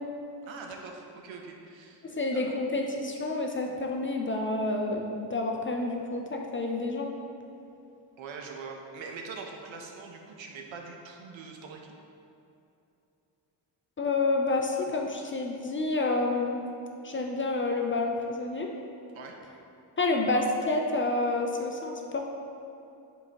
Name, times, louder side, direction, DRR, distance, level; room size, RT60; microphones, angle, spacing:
voice 1, 0.5-2.1 2.3-2.5 8.2-11.9 19.1-19.4, right 4 dB, 75° right, 2 dB, 0.7 m, -43 dB
voice 2, 2.0-7.1 14.0-16.7 17.0-18.7 20.0-22.3, left 2 dB, 30° left, 1 dB, 0.4 m, -29 dB
4.9 x 3.8 x 2.8 m, 2.8 s
cardioid pair, 65°, 47 cm